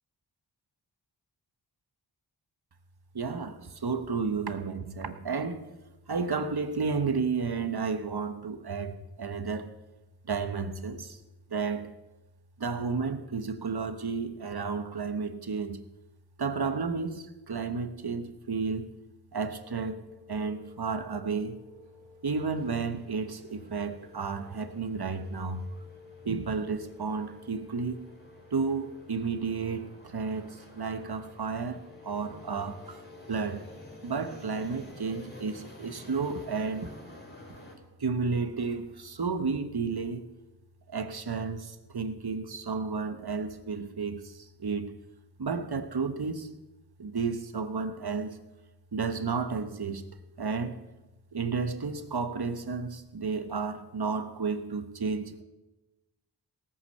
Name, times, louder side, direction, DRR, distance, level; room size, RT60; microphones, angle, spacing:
voice 1, 3.1-5.7 6.1-9.7 10.2-11.2 11.5-12.0 12.6-15.8 16.4-18.9 19.3-20.0 20.3-21.7 22.2-25.6 26.2-28.0 28.5-33.0 33.3-33.7 34.0-36.9 38.0-40.3 40.9-45.0 45.4-46.5 47.0-48.4 48.9-50.0 50.4-50.8 51.3-55.4, right 4 dB, 55° right, 10 dB, 1.2 m, -32 dB
sound 1, 19.6-34.8, left 5 dB, 75° right, 2.6 m, -54 dB
sound 2, 22.3-37.7, left 1 dB, 20° left, 4.5 m, -51 dB
17.5 x 8.7 x 6.6 m, 1.1 s
cardioid pair, 40°, 46 cm